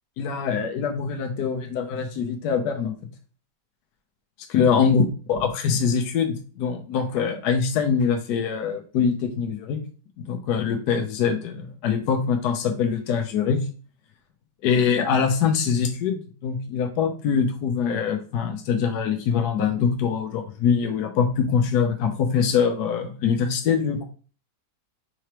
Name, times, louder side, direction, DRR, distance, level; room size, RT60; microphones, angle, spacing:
voice 1, 0.2-2.9 4.5-5.0 5.3-9.8 10.2-13.7 14.6-24.0, left 6 dB, 70° left, 3 dB, 1.2 m, -23 dB
4.8 x 3.1 x 2.9 m, 0.38 s
omnidirectional pair, 1.9 m